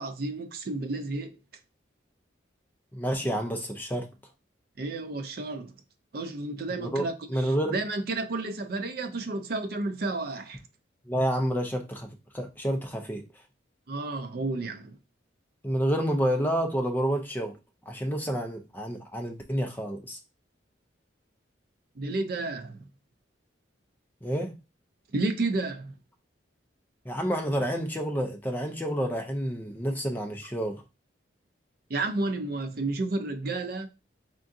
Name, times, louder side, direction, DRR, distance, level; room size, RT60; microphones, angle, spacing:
voice 1, 0.0-1.4 4.8-5.7 6.1-10.6 13.9-15.0 22.0-22.8 25.1-25.9 31.9-33.9, right 2 dB, 50° right, 0.4 m, -31 dB
voice 2, 2.9-4.1 6.8-7.8 11.1-12.1 12.3-13.2 15.6-17.6 17.9-20.2 24.2-24.6 27.0-30.8, equal, 10° left, 0.5 m, -29 dB
3.7 x 3.6 x 2.6 m
head